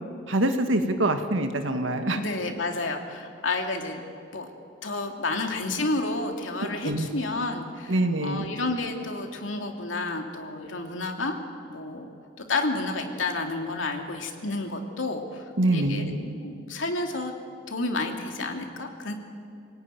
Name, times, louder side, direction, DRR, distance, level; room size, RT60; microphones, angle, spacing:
voice 1, 0.3-2.2 6.8-7.1 7.9-8.5 15.6-16.2, right 1 dB, 85° right, 6 dB, 1.9 m, -24 dB
voice 2, 2.1-4.0 4.3-4.5 4.8-11.4 11.7-12.1 12.5-15.5 15.7-17.3 17.7-19.1, left 2 dB, 90° left, 3 dB, 2.8 m, -30 dB
27.0 x 18.0 x 9.3 m, 2.5 s
head